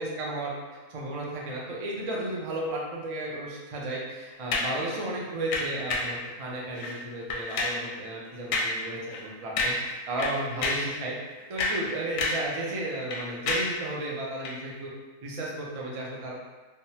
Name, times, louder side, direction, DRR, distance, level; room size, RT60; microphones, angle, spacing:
voice 1, 0.0-11.1 11.5-14.9 15.2-16.3, right 1 dB, 60° right, -3 dB, 0.3 m, -34 dB
sound 1, 4.5-4.8 5.5-6.2 6.7-7.0 7.3-7.8 8.5-8.8 9.1-9.3 9.6-9.9 10.2-10.9 11.4-12.5 12.8-13.8 14.4-14.6, left 2 dB, 90° left, 1.0 m, -29 dB
3.4 x 2.0 x 2.7 m, 1.3 s
omnidirectional pair, 1.3 m